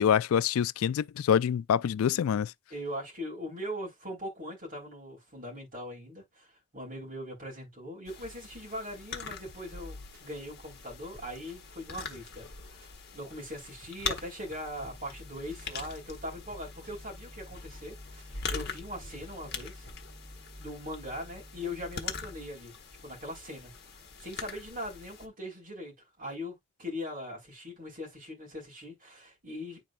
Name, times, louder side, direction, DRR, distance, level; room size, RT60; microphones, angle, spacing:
voice 1, 0.0-2.5, left 8 dB, 80° left, 0.3 m, -26 dB
voice 2, 2.7-12.9 13.1-19.9 20.6-22.7 23.0-23.7 24.2-29.8, left 1 dB, 40° right, 3.6 m, -40 dB
sound 1, 8.1-25.3, left 5 dB, 50° left, 1.1 m, -43 dB
sound 2, 9.5-20.0, right 2 dB, 65° right, 3.5 m, -59 dB
sound 3, 14.7-22.5, left 1 dB, ahead, 0.5 m, -50 dB
10.0 x 4.2 x 2.2 m
head